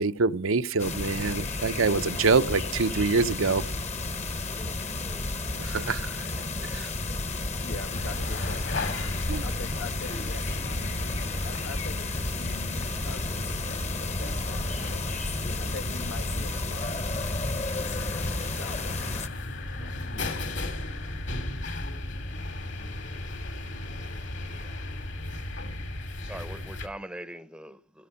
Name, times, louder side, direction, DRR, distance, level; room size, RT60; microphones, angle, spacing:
voice 1, 0.0-3.6 5.5-6.3 6.7-6.9 9.3-9.4, right 4 dB, 80° right, 0.7 m, -25 dB
sound 1, 0.8-19.3, left 2 dB, 35° left, 1.0 m, -32 dB
voice 2, 4.5-5.3 24.3-24.8 26.2-28.1, right 1 dB, 5° right, 0.7 m, -43 dB
voice 3, 7.6-8.9 9.4-15.2 15.6-17.4 17.7-19.3 19.8-20.4, left 3 dB, 90° left, 2.0 m, -44 dB
sound 2, 7.9-26.9, left 1 dB, 60° left, 3.0 m, -35 dB
16.5 x 14.5 x 5.7 m
head